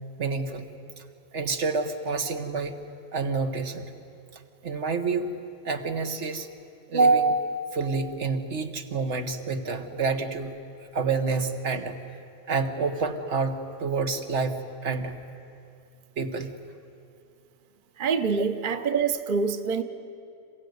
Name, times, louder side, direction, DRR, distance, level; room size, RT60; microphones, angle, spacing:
voice 1, 0.2-0.7 1.0-1.1 1.3-2.7 3.1-3.9 4.3-5.3 5.6-6.5 6.9-10.5 10.9-12.0 12.5-15.2 16.2-16.5, right 4 dB, 90° right, 6 dB, 1.6 m, -27 dB
voice 2, 18.0-19.8, right 5 dB, 50° right, 10 dB, 1.0 m, -25 dB
27.0 x 16.0 x 9.4 m, 2.6 s
omnidirectional pair, 1.2 m